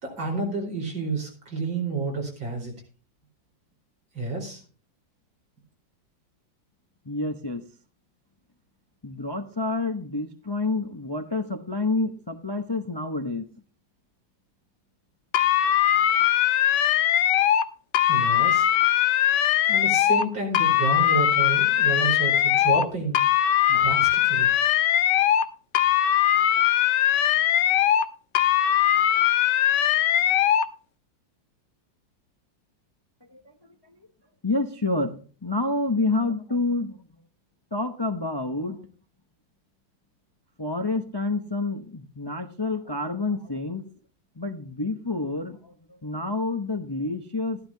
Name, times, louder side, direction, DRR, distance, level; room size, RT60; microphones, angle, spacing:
voice 1, 0.0-2.7 4.1-4.6 18.1-18.7 19.7-23.2 23.7-24.5, right 3 dB, 85° right, 0 dB, 5.2 m, -30 dB
voice 2, 7.0-7.6 9.0-13.4 15.6-16.0 33.3-33.4 33.9-34.0 34.4-37.2 37.7-38.9 40.6-43.9 44.4-47.6, left 2 dB, 30° left, 6 dB, 0.4 m, -28 dB
sound 1, 15.3-17.7 17.9-20.3 20.5-22.9 23.1-25.5 25.7-28.1 28.4-30.7, left 11 dB, 70° left, 1.3 m, -21 dB
15.0 x 11.0 x 2.8 m, 0.39 s
omnidirectional pair, 2.0 m